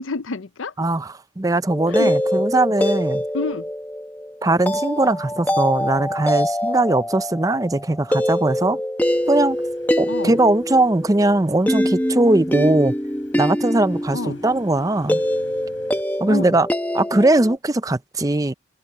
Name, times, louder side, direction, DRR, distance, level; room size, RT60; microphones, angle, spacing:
voice 1, 0.0-0.7 1.9-2.2 3.3-3.7 10.1-10.4 14.1-14.4 16.2-16.6, left 3 dB, 90° left, 0.7 m, -28 dB
voice 2, 0.8-3.2 4.4-8.8 9.3-9.6 10.0-12.9 13.3-15.2 16.2-16.7 16.9-18.5, right 2 dB, 20° right, 0.5 m, -20 dB
sound 1, 1.7-17.6, equal, 10° left, 1.2 m, -24 dB
sound 2, 9.0-16.0, left 2 dB, 70° left, 7.8 m, -52 dB
head